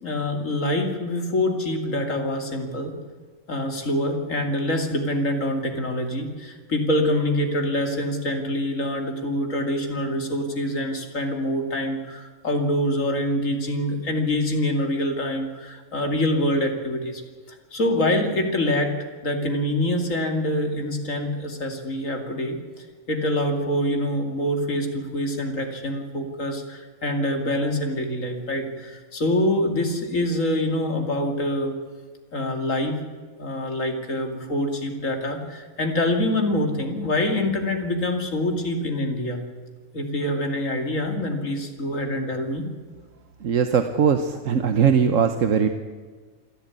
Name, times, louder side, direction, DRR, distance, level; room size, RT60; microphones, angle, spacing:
voice 1, 0.0-2.9 3.5-17.2 17.5-18.9 19.2-22.6 23.1-31.7 32.3-32.9 33.4-39.4 39.9-42.7, left 1 dB, 70° left, 4 dB, 3.0 m, -25 dB
voice 2, 43.4-45.7, right 7 dB, 70° right, 8 dB, 1.4 m, -20 dB
27.0 x 11.5 x 9.7 m, 1.5 s
omnidirectional pair, 1.4 m